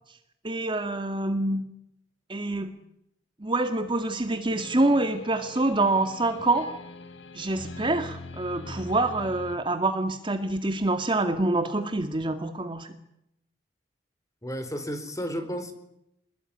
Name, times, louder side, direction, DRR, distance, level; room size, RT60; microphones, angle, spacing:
voice 1, 0.4-1.6 2.3-2.8 3.4-6.7 7.3-12.9, right 2 dB, 25° right, 7 dB, 1.9 m, -26 dB
sound 1, 4.5-9.6, left 2 dB, 90° left, 2.8 m, -42 dB
voice 2, 14.4-15.7, equal, 20° left, 10 dB, 4.2 m, -32 dB
27.0 x 21.5 x 9.8 m, 0.80 s
head